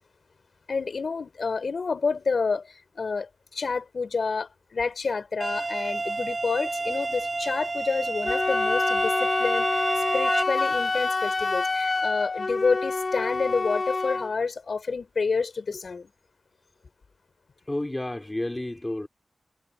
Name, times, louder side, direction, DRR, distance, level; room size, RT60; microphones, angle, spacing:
voice 1, 0.7-9.8 10.1-16.1, left 4 dB, 60° left, 5.7 m, -29 dB
sound 1, 5.4-10.4, right 3 dB, 35° right, 5.2 m, -29 dB
Wind instrument woodwind instrument, 8.2-14.3, left 3 dB, 40° left, 1.1 m, -26 dB
voice 2, 17.7-19.1, left 1 dB, 15° left, 3.2 m, -31 dB
wide cardioid pair, 95°, 0 cm